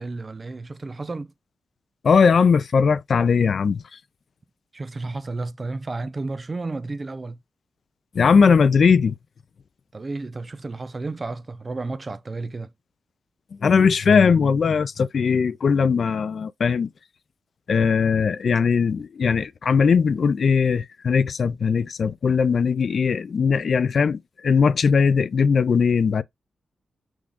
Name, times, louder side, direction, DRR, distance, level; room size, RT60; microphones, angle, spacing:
voice 1, 0.0-1.3 4.7-7.4 9.9-12.7, right 3 dB, 30° right, 0.5 m, -32 dB
voice 2, 2.0-3.8 8.1-9.2 13.6-16.9 17.7-26.2, left 5 dB, 55° left, 0.4 m, -19 dB
6.2 x 2.4 x 3.6 m
wide cardioid pair, 110°, 0 cm